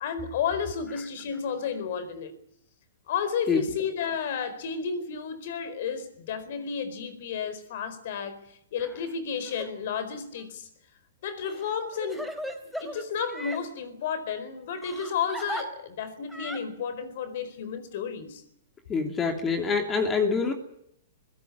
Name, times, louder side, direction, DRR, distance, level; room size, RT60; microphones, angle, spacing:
voice 1, 0.0-2.3 3.1-10.7 11.2-12.3 12.8-18.4, left 6 dB, 60° left, 4.4 m, -32 dB
Crying sobbing, 9.4-9.7 10.3-10.4 11.4-13.6 14.8-15.6 16.3-16.6, equal, ahead, 3.5 m, -37 dB
voice 2, 18.9-20.5, left 5 dB, 20° left, 2.9 m, -25 dB
22.0 x 17.0 x 9.9 m
hypercardioid pair, 140°, 0 cm